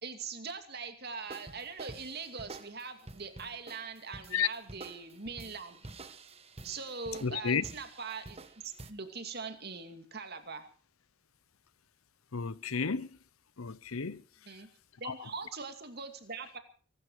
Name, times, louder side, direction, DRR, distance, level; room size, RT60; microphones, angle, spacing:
voice 1, 0.0-5.8 6.6-8.6 8.9-10.7 14.5-14.7 15.0-16.6, right 5 dB, 50° right, 2.5 m, -42 dB
sound 1, 1.3-8.9, right 2 dB, 30° right, 1.2 m, -49 dB
voice 2, 7.2-7.6 12.3-13.1 13.6-14.2 15.1-15.2, left 6 dB, 85° left, 0.8 m, -31 dB
24.0 x 12.5 x 4.8 m
head